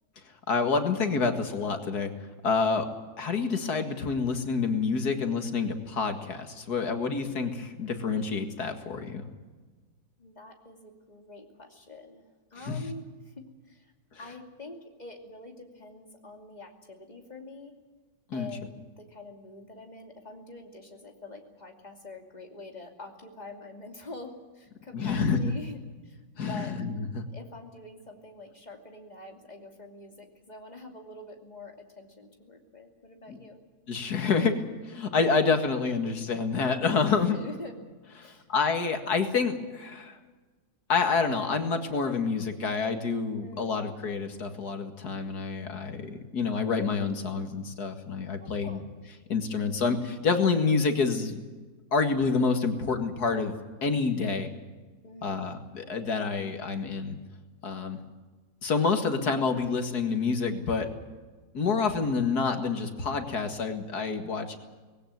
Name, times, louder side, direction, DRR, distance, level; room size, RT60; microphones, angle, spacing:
voice 1, 0.5-2.1 2.4-2.9 3.2-9.2 12.6-12.8 18.3-18.5 24.9-25.5 26.4-27.3 33.3-33.4 33.9-34.6 34.8-37.4 38.2-40.2 40.9-48.8 49.3-51.4 51.9-53.5 53.8-54.5 55.2-57.2 57.6-58.0 58.6-60.9 61.5-64.6, left 4 dB, 80° left, 6 dB, 2.5 m, -28 dB
voice 2, 10.2-12.2 12.5-13.9 14.2-17.7 18.3-26.8 27.3-33.6 37.1-37.7 38.2-38.5 43.4-43.8 48.4-48.8 55.0-55.5, left 2 dB, 25° left, 3 dB, 2.8 m, -46 dB
20.0 x 17.0 x 9.3 m, 1.3 s
omnidirectional pair, 1.7 m